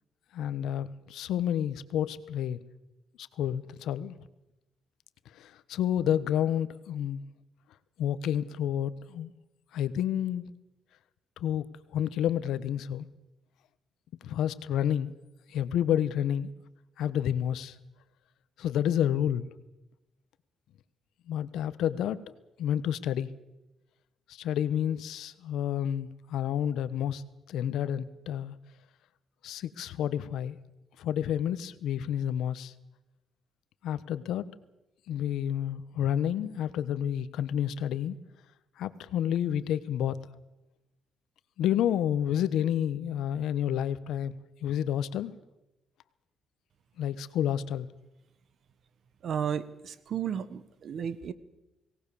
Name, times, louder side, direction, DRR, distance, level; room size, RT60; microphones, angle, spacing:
voice 1, 0.3-2.6 3.2-4.1 5.3-7.2 8.0-9.3 9.7-10.4 11.4-11.7 11.9-13.1 14.2-15.1 15.5-16.5 17.0-17.7 18.6-19.5 21.3-22.2 22.6-23.3 24.3-27.2 27.5-28.6 29.4-30.6 31.0-32.7 33.8-34.5 35.1-38.2 38.8-40.2 41.6-45.3 47.0-47.9, left 10 dB, 80° left, 14 dB, 1.1 m, -29 dB
voice 2, 49.2-51.3, right 8 dB, 60° right, 16 dB, 1.4 m, -33 dB
23.0 x 18.0 x 7.1 m, 0.96 s
cardioid pair, 90°, 0 cm